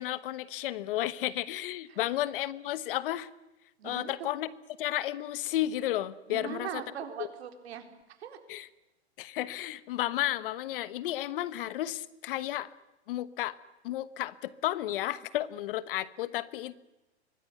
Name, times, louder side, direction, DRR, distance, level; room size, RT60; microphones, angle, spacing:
voice 1, 0.0-3.3 3.8-4.5 4.8-6.8 7.2-7.3 8.5-8.7 9.2-12.7 13.1-13.6 13.8-16.7, left 14 dB, 50° left, 16 dB, 1.2 m, -32 dB
voice 2, 3.8-4.3 6.3-8.4, right 8 dB, 65° right, 6 dB, 4.2 m, -41 dB
24.5 x 19.5 x 9.4 m, 0.98 s
hypercardioid pair, 140°, 34 cm